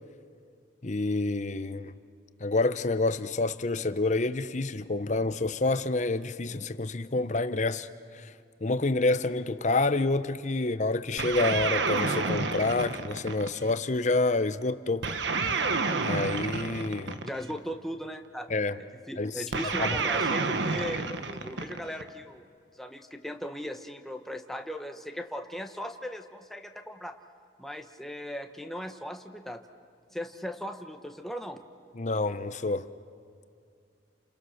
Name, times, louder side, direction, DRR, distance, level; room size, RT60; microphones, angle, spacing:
voice 1, 0.8-1.9 2.4-7.9 8.1-8.3 8.6-15.2 16.0-17.2 18.5-18.8 19.2-19.4 19.8-19.9 31.9-32.9, left 2 dB, 40° left, 0.8 m, -28 dB
sound 1, 11.2-13.8 15.0-17.6 19.5-22.1, right 4 dB, 85° right, 1.3 m, -29 dB
voice 2, 17.2-18.5 19.1-22.5 22.8-27.1 27.6-29.6 30.1-31.6, equal, ahead, 1.1 m, -38 dB
29.5 x 27.5 x 6.6 m
head